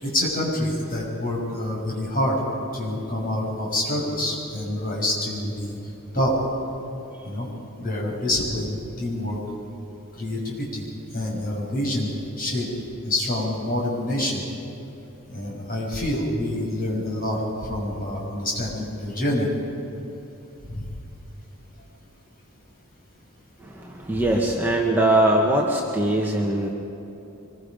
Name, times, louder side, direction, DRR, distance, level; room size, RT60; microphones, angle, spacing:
voice 1, 0.0-2.4 2.7-5.8 6.1-6.4 7.2-7.5 7.8-9.4 10.2-10.8 11.1-12.1 12.4-12.7 13.0-14.4 15.3-17.4 17.7-19.5 20.6-20.9, left 1 dB, 40° left, -3 dB, 6.3 m, -26 dB
voice 2, 23.6-26.7, right 1 dB, 10° right, -2 dB, 1.5 m, -21 dB
24.5 x 22.5 x 5.3 m, 2.9 s
head